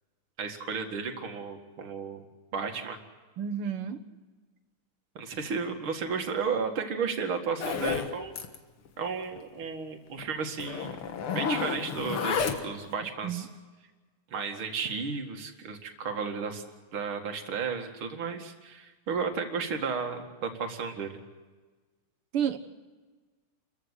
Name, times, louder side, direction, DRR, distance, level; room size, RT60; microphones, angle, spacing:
voice 1, 0.4-2.2 2.5-3.0 5.2-8.4 9.0-11.0 11.3-13.5 14.3-16.6 16.9-21.2, right 5 dB, 75° right, 4 dB, 2.7 m, -33 dB
voice 2, 3.4-4.0 13.2-13.4 22.3-22.6, right 8 dB, 90° right, 9 dB, 2.3 m, -30 dB
Zipper (clothing), 7.6-8.1 8.4-8.6 8.9-9.0 9.3-9.4 10.2-10.3 10.6-12.9, left 6 dB, 85° left, 2.4 m, -31 dB
29.0 x 15.0 x 8.2 m, 1.3 s
omnidirectional pair, 2.3 m